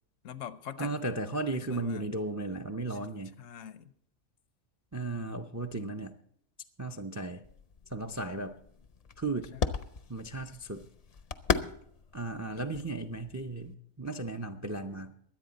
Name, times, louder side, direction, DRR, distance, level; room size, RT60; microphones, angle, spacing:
voice 1, 0.2-1.0 1.5-2.1 2.9-3.0 3.4-3.9 9.3-9.7, left 9 dB, 80° left, 1.1 m, -44 dB
voice 2, 0.8-3.4 4.9-6.2 6.8-7.4 7.9-8.6 9.2-9.6 10.1-10.9 12.1-15.1, right 2 dB, 25° right, 0.3 m, -35 dB
sound 1, 7.4-13.7, left 6 dB, 45° left, 0.5 m, -37 dB
23.0 x 8.6 x 4.1 m
omnidirectional pair, 1.3 m